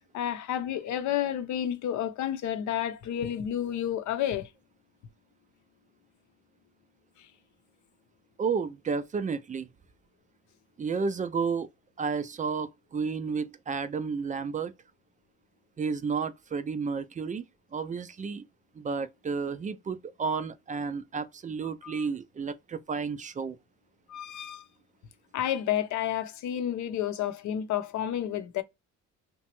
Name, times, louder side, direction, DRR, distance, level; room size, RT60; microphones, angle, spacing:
voice 1, 0.1-4.5 21.8-21.9 24.1-24.6 25.3-28.6, left 10 dB, 75° left, 0.6 m, -30 dB
voice 2, 8.4-9.7 10.8-11.7 12.0-14.7 15.8-17.4 17.7-18.4 18.7-23.6, right 5 dB, 25° right, 0.3 m, -32 dB
2.9 x 2.1 x 2.9 m
cardioid pair, 90°, 30 cm